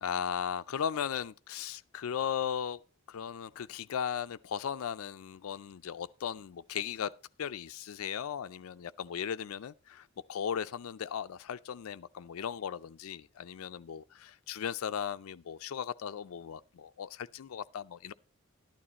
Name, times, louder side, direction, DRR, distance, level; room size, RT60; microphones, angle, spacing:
voice 1, 0.0-2.8 3.1-7.1 7.4-18.1, left 8 dB, 85° left, 0.4 m, -37 dB
12.0 x 11.0 x 2.9 m
head